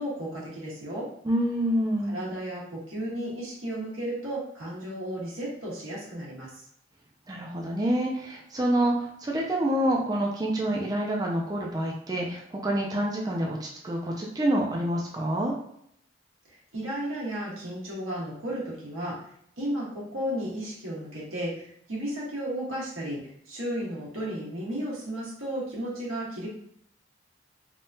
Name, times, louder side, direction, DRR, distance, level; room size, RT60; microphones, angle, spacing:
voice 1, 0.0-1.1 2.1-6.6 16.4-19.2 19.6-26.5, right 1 dB, 90° right, -6 dB, 1.4 m, -34 dB
voice 2, 1.2-2.2 7.3-15.5, right 1 dB, 20° right, -1 dB, 0.4 m, -27 dB
3.4 x 2.2 x 2.7 m, 0.70 s
head